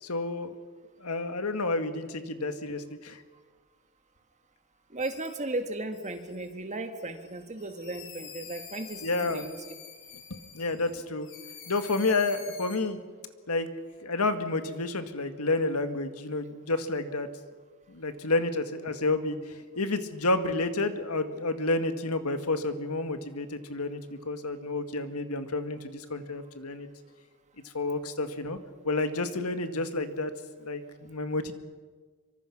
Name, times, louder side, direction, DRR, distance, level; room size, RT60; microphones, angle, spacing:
voice 1, 0.0-0.5 1.0-3.2 9.0-9.4 10.5-11.3 11.7-13.0 13.5-13.7 14.0-17.3 17.9-26.9 27.6-28.6 28.8-30.3 30.6-31.5, left 2 dB, 80° left, 8 dB, 1.8 m, -30 dB
voice 2, 4.9-9.7, right 2 dB, 35° right, 7 dB, 1.8 m, -36 dB
sound 1, 5.0-5.5 5.9-6.5 7.0-10.9 11.2-12.8, left 6 dB, 60° left, 4.6 m, -47 dB
26.0 x 24.0 x 6.0 m, 1.5 s
head